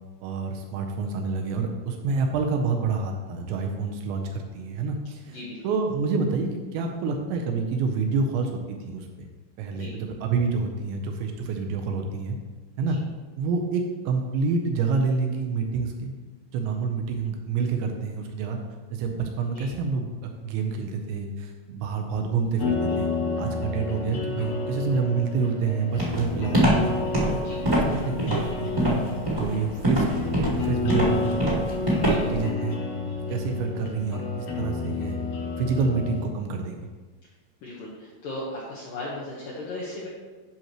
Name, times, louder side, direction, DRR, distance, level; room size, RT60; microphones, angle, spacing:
voice 1, 0.2-5.4 5.6-9.3 9.6-12.4 12.8-13.0 13.4-16.1 16.5-18.6 18.9-23.1 23.4-27.0 27.9-28.7 29.3-31.4 32.0-32.8 33.3-35.2 35.6-36.9, right 4 dB, 80° right, 3 dB, 2.8 m, -28 dB
voice 2, 5.3-5.8 9.7-9.9 12.9-13.0 19.5-19.7 27.4-27.6 32.0-32.4 37.6-40.1, left 1 dB, 80° left, -5 dB, 2.0 m, -37 dB
sound 1, 22.6-36.3, left 4 dB, 60° left, 2.6 m, -30 dB
Walk footsteps, 26.0-32.4, right 1 dB, 20° right, 0.8 m, -23 dB
10.5 x 6.3 x 2.9 m, 1.3 s
omnidirectional pair, 5.5 m